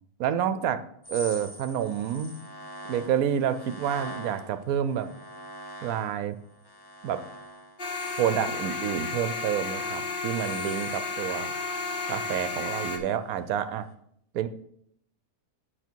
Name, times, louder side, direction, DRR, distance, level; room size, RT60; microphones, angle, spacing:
voice 1, 0.2-0.8 1.1-2.4 2.9-5.1 5.8-6.4 7.0-7.2 8.2-11.5 12.1-13.9 14.3-14.5, right 9 dB, 70° right, 12 dB, 1.0 m, -28 dB
sound 1, 1.0-6.2 6.4-13.6 13.9-14.0, equal, 15° left, 1.1 m, -45 dB
sound 2, 7.8-13.0, left 4 dB, 35° left, 1.4 m, -32 dB
8.2 x 6.3 x 4.5 m, 0.70 s
omnidirectional pair, 1.8 m